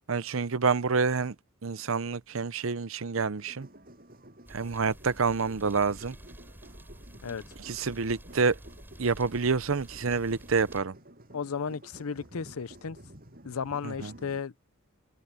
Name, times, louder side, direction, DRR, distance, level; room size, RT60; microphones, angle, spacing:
voice 1, 0.1-1.3 1.6-3.7 4.5-6.2 7.6-8.6 9.0-10.9 13.8-14.1, right 4 dB, 65° right, 0.7 m, -28 dB
sound 1, 3.4-14.4, right 1 dB, 45° right, 7.5 m, -52 dB
sound 2, 4.4-10.8, equal, 10° right, 5.4 m, -50 dB
voice 2, 11.3-13.0 13.4-14.5, left 6 dB, 80° left, 0.6 m, -34 dB
head